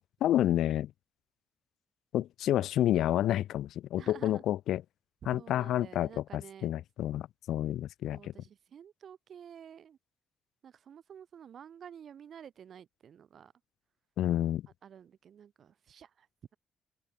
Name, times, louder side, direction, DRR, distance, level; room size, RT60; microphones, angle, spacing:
voice 1, 0.2-0.9 2.1-4.8 5.3-8.3 14.2-14.7, left 12 dB, 80° left, 0.7 m, -29 dB
voice 2, 4.0-4.4 5.3-6.8 8.1-10.0 10.6-13.5 14.8-16.3, right 8 dB, 60° right, 6.6 m, -51 dB
open air
cardioid pair, 90°, 0 cm